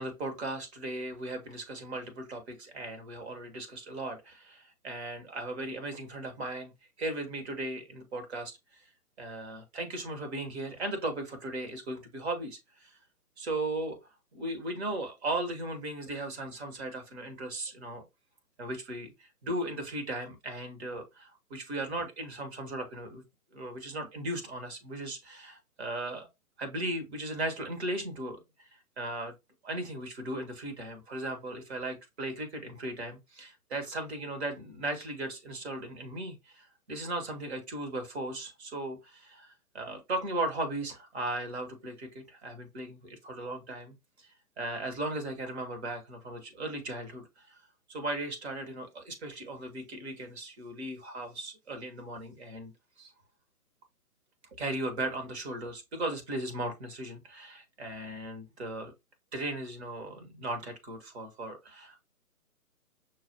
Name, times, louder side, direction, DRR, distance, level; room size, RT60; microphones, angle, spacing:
voice 1, 0.0-6.7 7.0-8.9 9.2-13.0 13.4-14.0 14.3-18.0 18.6-23.2 23.5-26.3 26.6-28.7 29.0-29.3 29.6-44.3 44.6-47.6 47.9-52.7 53.0-53.1 54.5-58.9 59.3-62.0, right 2 dB, 45° right, 1.5 m, -37 dB
6.0 x 2.4 x 2.8 m
hypercardioid pair, 145°, 45 cm